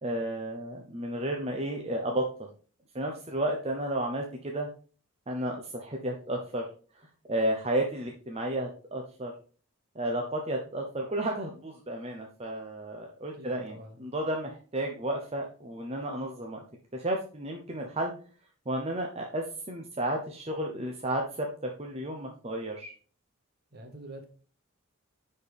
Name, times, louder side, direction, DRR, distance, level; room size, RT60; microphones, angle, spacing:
voice 1, 0.0-2.3 2.9-4.7 5.3-6.7 6.9-9.3 9.9-16.6 16.9-18.1 18.7-22.9, right 1 dB, 30° right, 1 dB, 0.8 m, -32 dB
voice 2, 13.4-14.0 23.7-24.3, right 1 dB, 50° right, 4 dB, 1.7 m, -46 dB
9.9 x 4.4 x 3.5 m, 0.39 s
head